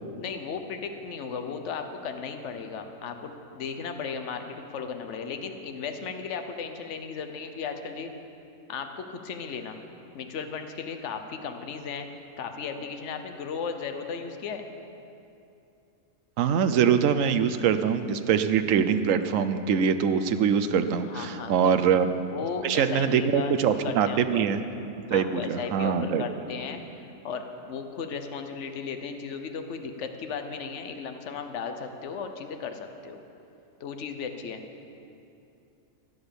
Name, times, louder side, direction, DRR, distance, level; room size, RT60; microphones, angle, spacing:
voice 1, 0.2-8.1 8.7-9.8 10.1-12.1 12.4-14.7 21.0-21.7 22.3-24.4 25.1-33.2 33.8-34.6, left 6 dB, 65° left, 6 dB, 1.2 m, -36 dB
voice 2, 16.4-22.1 22.6-24.6 25.1-26.2, right 7 dB, 75° right, 9 dB, 1.1 m, -23 dB
16.0 x 9.9 x 7.0 m, 2.7 s
omnidirectional pair, 1.4 m